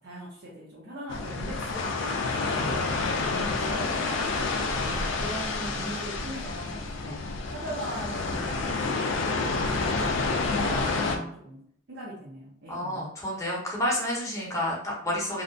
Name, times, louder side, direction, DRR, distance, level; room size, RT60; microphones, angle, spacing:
voice 1, 0.0-2.2 2.5-4.2 4.8-13.1 14.3-14.7, right 1 dB, 55° right, -5 dB, 0.6 m, -41 dB
sound 1, 1.1-11.2, left 3 dB, 60° left, 0.3 m, -29 dB
voice 2, 2.5-3.2 4.7-5.4 7.0-7.2 10.6-11.3 12.7-15.4, left 1 dB, 15° left, -4 dB, 0.7 m, -32 dB
2.7 x 2.2 x 2.5 m, 0.65 s
head